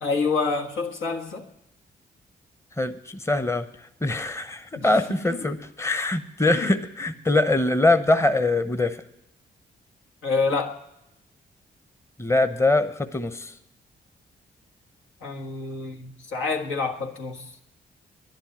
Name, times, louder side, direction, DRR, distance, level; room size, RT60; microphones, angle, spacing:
voice 1, 0.0-1.5 4.8-5.5 6.5-6.7 10.2-10.8 15.2-17.6, left 4 dB, 75° left, 1 dB, 1.5 m, -28 dB
voice 2, 2.8-3.6 4.0-9.0 12.2-13.5, left 2 dB, 15° left, 10 dB, 0.9 m, -23 dB
11.0 x 10.5 x 8.7 m, 0.87 s
supercardioid pair, 45°, 21 cm